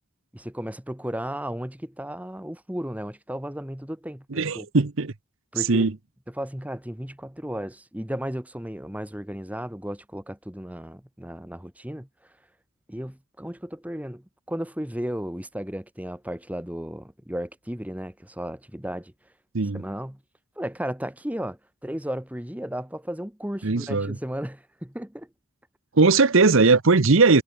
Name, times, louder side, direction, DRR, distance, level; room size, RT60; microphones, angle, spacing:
voice 1, 0.3-4.7 5.5-5.9 6.3-12.1 12.9-19.1 19.7-20.2 20.6-25.3, equal, 5° right, 1.2 m, -34 dB
voice 2, 4.3-5.1 5.6-5.9 19.5-19.8 23.6-24.1 25.9-27.4, right 3 dB, 65° right, 0.9 m, -19 dB
head